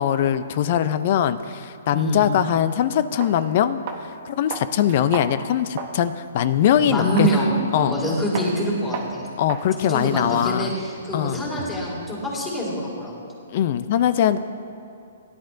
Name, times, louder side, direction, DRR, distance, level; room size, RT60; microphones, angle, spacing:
voice 1, 0.0-3.8 4.3-7.3 7.7-8.0 9.4-10.7 11.1-11.4 13.5-14.4, left 10 dB, 45° left, 13 dB, 0.4 m, -21 dB
voice 2, 1.9-2.3 6.8-9.2 9.8-13.1, equal, 15° left, -6 dB, 2.4 m, -25 dB
sound 1, 3.2-3.4 3.9-4.1 4.5-6.0 6.4-6.6 7.2-7.4 7.8-8.1 8.4-8.5 8.9-9.2 9.5-9.7 10.0-11.9, right 5 dB, 40° right, 1.0 m, -35 dB
17.0 x 10.0 x 2.6 m, 2.7 s
hypercardioid pair, 155°, 0 cm